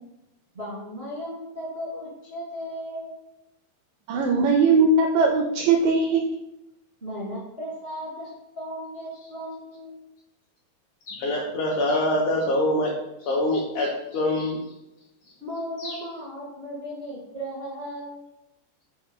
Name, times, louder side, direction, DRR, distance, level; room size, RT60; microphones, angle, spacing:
voice 1, 0.5-3.1 7.0-8.3 8.5-10.0 15.4-18.2, equal, 65° right, -8 dB, 0.6 m, -36 dB
voice 2, 4.1-6.2, right 4 dB, 85° right, 3 dB, 1.9 m, -20 dB
voice 3, 11.1-12.9 13.3-14.6 15.8-16.0, left 1 dB, 80° left, -3 dB, 1.8 m, -24 dB
6.0 x 4.3 x 3.6 m, 0.92 s
omnidirectional pair, 4.3 m